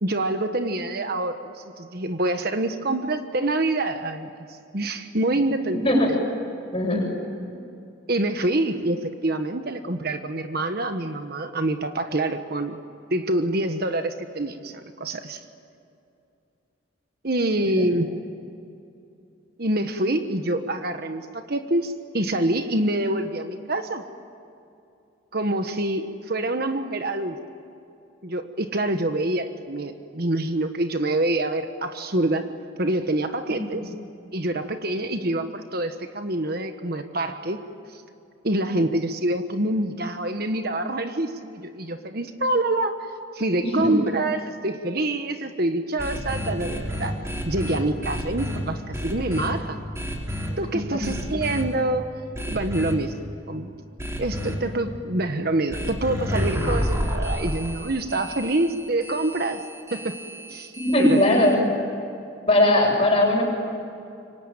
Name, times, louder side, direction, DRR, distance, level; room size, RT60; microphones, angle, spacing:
voice 1, 0.0-4.3 4.7-5.9 8.1-12.8 13.1-15.4 17.2-18.1 19.6-24.0 25.3-27.4 28.2-32.5 32.8-33.9 34.3-37.6 37.9-38.0 38.4-42.9 43.3-47.2 47.4-49.8 50.6-52.0 52.5-53.1 53.5-53.7 54.2-59.6 59.9-60.1 60.5-60.7 61.0-61.2, right 1 dB, 50° right, 7 dB, 1.3 m, -26 dB
voice 2, 6.7-7.0 17.7-17.8 33.5-33.6 43.6-43.9 50.6-51.0 60.8-61.6 62.5-63.4, left 1 dB, 30° left, -1 dB, 8.0 m, -20 dB
sound 1, 46.0-48.6 48.9-49.5 49.9-50.5 51.0-51.6 52.3-52.9 54.0-54.5 55.7-61.5, equal, 15° right, 4.4 m, -30 dB
27.0 x 24.0 x 9.1 m, 2.6 s
head